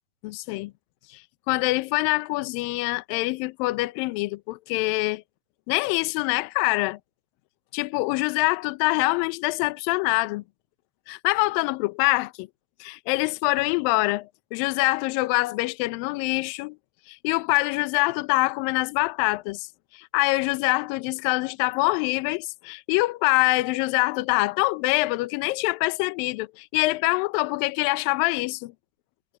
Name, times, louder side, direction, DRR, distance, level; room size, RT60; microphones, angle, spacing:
voice 1, 0.2-0.7 1.5-5.2 5.7-7.0 7.7-10.4 11.1-12.5 12.8-16.8 17.1-19.7 19.9-28.7, left 23 dB, 80° left, 2.1 m, -25 dB
omnidirectional pair, 4.8 m